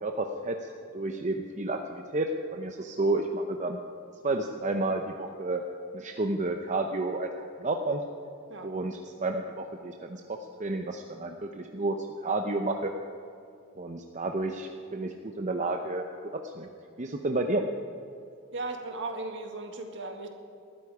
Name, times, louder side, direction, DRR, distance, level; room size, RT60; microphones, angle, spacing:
voice 1, 0.0-3.8 4.2-5.6 5.9-8.0 8.6-12.9 13.8-16.0 16.4-16.7 17.0-17.6, right 2 dB, 35° right, 4 dB, 0.7 m, -31 dB
voice 2, 18.5-20.3, right 3 dB, 60° right, 4 dB, 1.9 m, -36 dB
20.0 x 13.0 x 4.9 m, 2.6 s
head